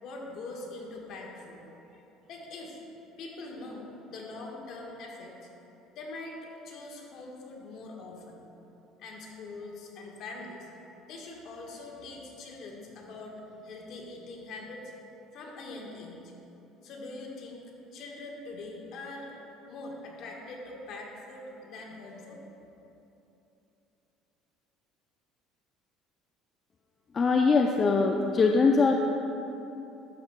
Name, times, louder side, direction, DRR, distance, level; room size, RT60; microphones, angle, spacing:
voice 1, 0.0-1.6 1.9-2.0 2.3-2.8 3.2-5.5 5.9-8.4 9.0-10.7 11.1-14.9 15.3-16.3 16.8-17.6 17.9-22.4, left 2 dB, 60° left, -1 dB, 1.3 m, -43 dB
voice 2, 27.1-29.0, left 4 dB, 35° left, 2 dB, 0.4 m, -22 dB
11.0 x 7.1 x 2.2 m, 3.0 s
supercardioid pair, 100°, 0 cm